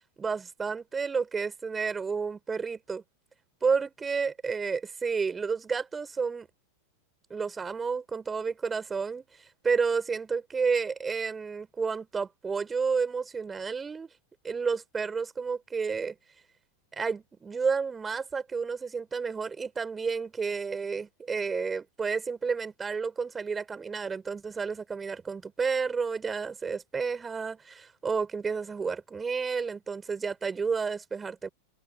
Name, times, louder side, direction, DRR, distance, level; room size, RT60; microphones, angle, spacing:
voice 1, 0.2-3.0 3.6-6.5 7.3-9.2 9.6-14.1 14.4-16.2 17.0-31.5, right 5 dB, 15° right, 4.9 m, -31 dB
figure-of-eight pair, 90°, 0 cm